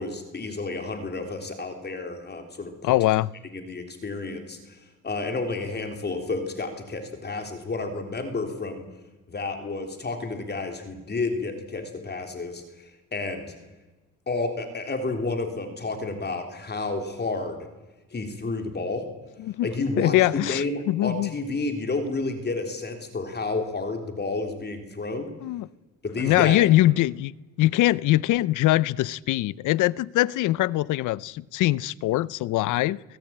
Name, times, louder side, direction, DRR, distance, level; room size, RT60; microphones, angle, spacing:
voice 1, 0.0-2.9 3.5-4.8 5.0-8.9 9.3-13.5 14.3-17.6 18.1-19.1 19.6-25.3 26.0-26.6, left 3 dB, 35° left, 3.6 m, -31 dB
voice 2, 2.8-3.3 19.4-19.7 20.0-21.3 25.4-25.7 26.2-33.0, left 16 dB, 85° left, 0.6 m, -22 dB
23.5 x 15.5 x 8.8 m
cardioid pair, 90°, 30 cm